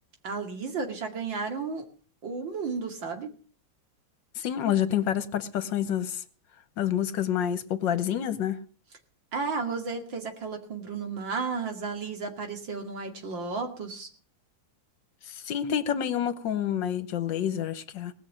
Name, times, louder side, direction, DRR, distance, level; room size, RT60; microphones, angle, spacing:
voice 1, 0.2-1.8 2.2-3.3 9.3-14.1, right 4 dB, 75° right, 3.1 m, -33 dB
voice 2, 4.4-6.2 6.8-8.6 15.3-18.1, left 10 dB, 75° left, 1.8 m, -28 dB
19.5 x 6.6 x 8.7 m
omnidirectional pair, 2.1 m